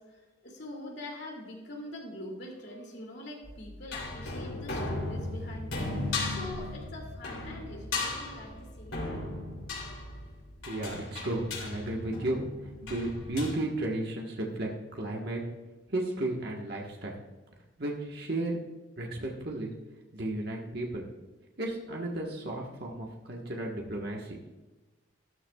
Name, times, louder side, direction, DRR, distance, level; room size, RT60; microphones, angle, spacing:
voice 1, 0.0-9.3 11.8-11.9, left 1 dB, 60° left, 0 dB, 2.7 m, -44 dB
sound 1, 3.4-13.5, left 2 dB, 80° left, 3.2 m, -36 dB
voice 2, 10.7-15.4 15.9-17.2 17.8-18.6 19.0-19.7 20.1-21.0 21.6-24.4, right 1 dB, 55° right, -1 dB, 1.4 m, -34 dB
13.5 x 12.5 x 2.4 m, 1.1 s
head